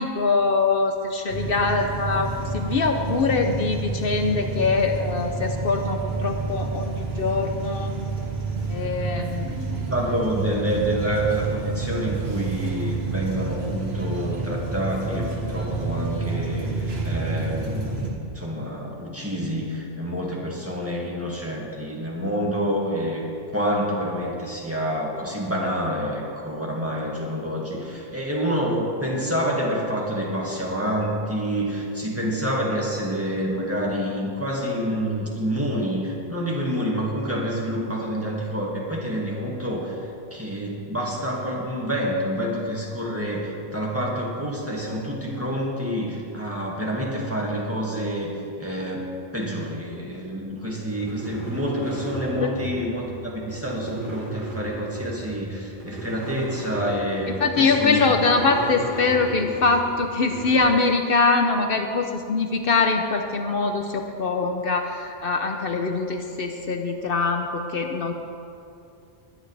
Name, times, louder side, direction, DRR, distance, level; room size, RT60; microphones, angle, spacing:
voice 1, 0.0-8.0 8.7-9.8 52.4-52.5 57.4-68.1, left 4 dB, 65° left, 4 dB, 0.9 m, -23 dB
sound 1, 1.3-18.1, right 3 dB, 80° right, 1.8 m, -29 dB
voice 2, 9.9-23.2 23.5-40.0 40.3-48.3 48.6-49.1 49.3-58.0, equal, 15° right, -4 dB, 2.0 m, -28 dB
sound 2, 50.7-60.6, right 1 dB, 55° right, 4.0 m, -36 dB
20.5 x 10.0 x 3.4 m, 2.6 s
omnidirectional pair, 1.0 m